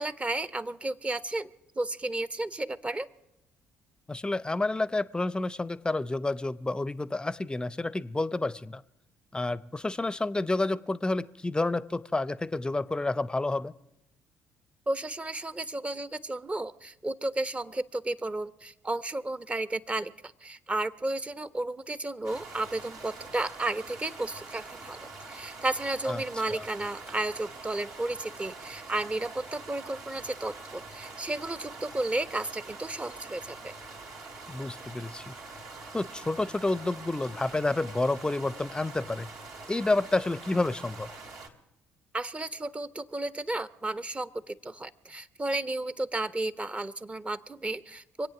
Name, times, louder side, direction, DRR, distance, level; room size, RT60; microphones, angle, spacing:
voice 1, 0.0-1.5 1.7-3.1 14.9-33.7 42.1-48.3, right 2 dB, 20° right, 15 dB, 0.8 m, -33 dB
voice 2, 4.1-8.8 9.3-13.7 26.1-26.2 26.5-26.7 34.5-35.3 35.9-39.3 39.7-41.1, left 2 dB, 15° left, 18 dB, 0.6 m, -29 dB
sound 1, 22.2-41.5, right 3 dB, 65° right, 2.4 m, -45 dB
25.5 x 8.6 x 6.0 m, 0.86 s
hypercardioid pair, 50°, 6 cm